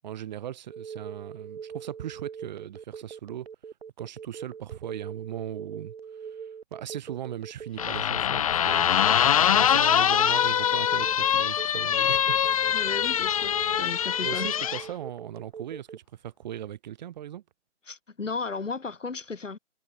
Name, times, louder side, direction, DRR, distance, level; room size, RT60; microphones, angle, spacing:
voice 1, 0.0-3.5 4.0-5.9 6.2-12.4 14.2-17.4, right 11 dB, 35° right, 4.2 m, -38 dB
Telephone, 0.7-16.0, right 7 dB, 55° right, 2.5 m, -42 dB
sound 1, 7.8-14.8, left 9 dB, 30° left, 0.8 m, -23 dB
voice 2, 12.7-14.5 17.9-19.6, left 4 dB, 85° left, 1.9 m, -35 dB
figure-of-eight pair, 145°, 37 cm